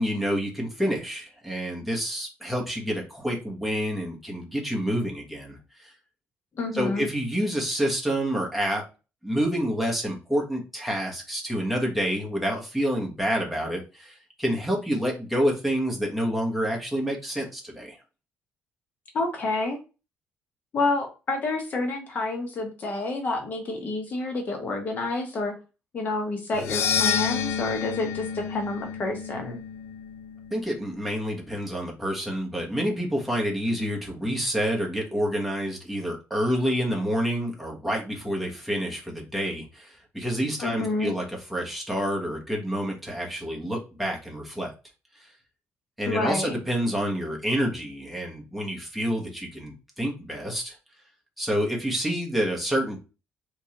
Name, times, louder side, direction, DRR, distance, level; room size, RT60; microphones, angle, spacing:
voice 1, 0.0-5.9 6.7-8.8 9.2-18.0 30.5-44.7 45.2-45.3 46.0-50.8 51.4-53.0, equal, ahead, -2 dB, 1.1 m, -28 dB
voice 2, 6.6-7.1 19.1-19.8 20.7-25.6 25.9-29.6 40.6-41.1 46.1-46.5, left 2 dB, 40° left, 3 dB, 0.9 m, -29 dB
sound 1, 26.5-30.9, left 7 dB, 75° left, 0.5 m, -29 dB
3.5 x 3.1 x 2.9 m, 0.30 s
cardioid pair, 150°, 4 cm